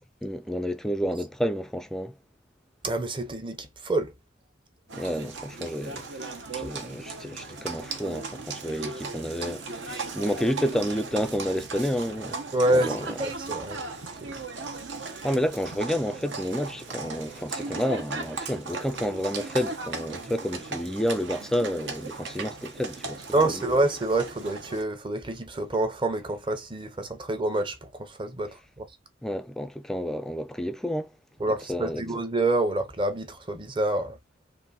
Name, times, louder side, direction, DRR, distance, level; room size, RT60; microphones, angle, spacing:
voice 1, 0.2-2.1 4.9-12.4 12.7-13.1 15.2-23.5 29.2-31.1 31.7-32.0, equal, 5° left, 0.3 m, -30 dB
voice 2, 2.8-4.1 12.5-13.8 14.2-14.3 23.3-28.9 31.4-34.2, right 2 dB, 25° right, 0.8 m, -27 dB
Livestock farm animals working animals, 4.9-24.8, right 3 dB, 70° right, 1.0 m, -37 dB
3.7 x 2.6 x 4.0 m
head